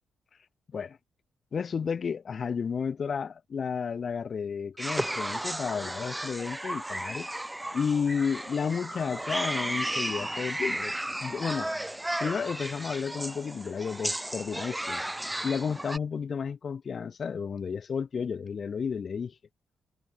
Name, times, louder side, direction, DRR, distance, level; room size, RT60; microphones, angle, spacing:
voice 1, 1.5-7.3 7.7-11.0 11.2-11.7 12.2-15.0 15.4-19.3, left 6 dB, 55° left, 2.4 m, -32 dB
sound 1, 4.8-16.0, right 1 dB, 10° right, 4.4 m, -34 dB
hypercardioid pair, 45°, 0 cm